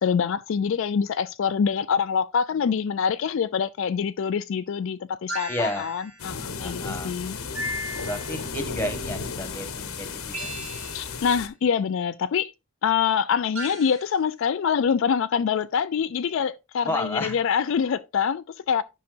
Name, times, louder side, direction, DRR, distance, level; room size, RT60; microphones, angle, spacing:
voice 1, 0.0-7.4 10.9-12.5 12.8-18.8, left 7 dB, 60° left, 0.3 m, -25 dB
sound 1, 5.3-6.2 7.5-8.5 10.3-11.2 13.6-14.1, equal, 85° right, 2.7 m, -35 dB
voice 2, 5.5-5.8 6.6-7.1 8.0-10.5 16.8-17.4, left 1 dB, 10° left, 1.3 m, -31 dB
sound 2, 6.2-11.5, left 5 dB, 80° left, 1.0 m, -34 dB
10.5 x 5.6 x 2.5 m
head